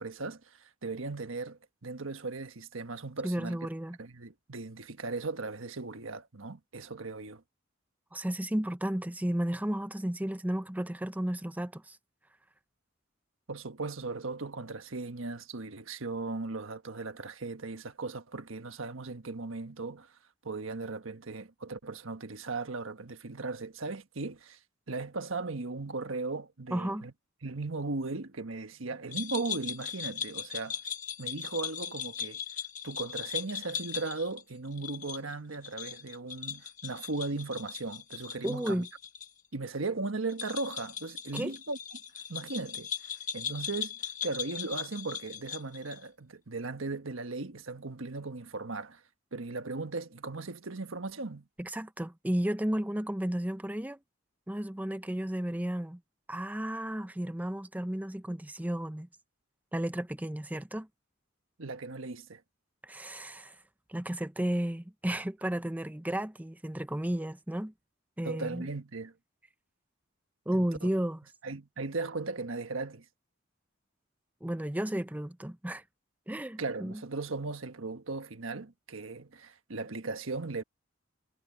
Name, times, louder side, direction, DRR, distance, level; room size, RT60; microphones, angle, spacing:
voice 1, 0.0-3.6 4.0-7.4 13.5-24.6 24.9-27.1 27.4-30.9 31.2-32.4 32.8-38.8 39.5-41.8 42.3-43.9 44.2-49.0 49.3-51.5 61.6-62.4 68.2-69.1 70.5-70.9 71.4-73.0 76.6-80.6, right 3 dB, 85° right, 1.3 m, -37 dB
voice 2, 3.2-4.0 8.1-12.0 26.7-27.1 38.4-38.9 41.3-41.5 51.6-54.0 54.5-56.0 56.3-59.1 59.7-60.9 62.8-63.6 63.9-67.7 68.2-68.7 70.5-71.2 74.4-75.8 76.3-77.0, right 1 dB, 10° right, 0.6 m, -33 dB
sound 1, 29.1-39.3 39.5-39.6 40.3-46.0, left 8 dB, 40° left, 1.4 m, -39 dB
head